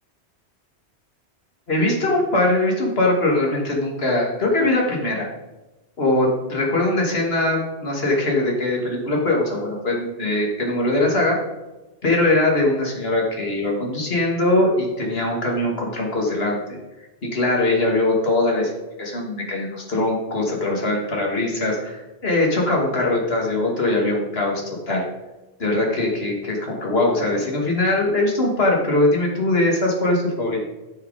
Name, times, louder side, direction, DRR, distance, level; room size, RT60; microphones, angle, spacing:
voice 1, 1.7-5.3 6.0-11.4 12.0-16.6 17.2-18.7 19.0-25.0 25.6-30.6, left 2 dB, 65° left, -1 dB, 2.5 m, -21 dB
13.5 x 5.1 x 4.9 m, 1.0 s
omnidirectional pair, 1.1 m